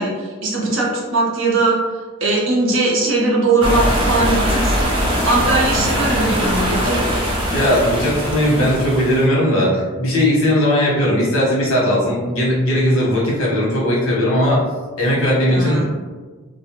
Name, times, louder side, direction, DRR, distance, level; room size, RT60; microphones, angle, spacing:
voice 1, 0.0-1.8 2.2-5.0 5.3-7.0 15.5-15.8, right 2 dB, 65° right, -3 dB, 0.7 m, -19 dB
sound 1, 3.6-9.3, equal, 25° right, 0.4 m, -20 dB
voice 2, 7.5-14.6 15.0-15.8, equal, 75° left, -5 dB, 1.0 m, -17 dB
2.4 x 2.1 x 2.9 m, 1.4 s
head